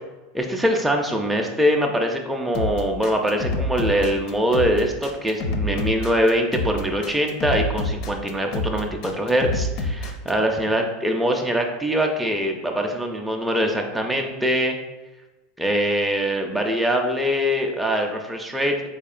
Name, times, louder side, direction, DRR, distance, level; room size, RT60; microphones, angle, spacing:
voice 1, 0.3-14.8 15.6-19.0, equal, 5° right, 1 dB, 0.4 m, -23 dB
sound 1, 2.5-10.3, left 2 dB, 55° left, 0.5 m, -27 dB
4.0 x 2.8 x 2.4 m, 1.1 s
supercardioid pair, 115°, 0 cm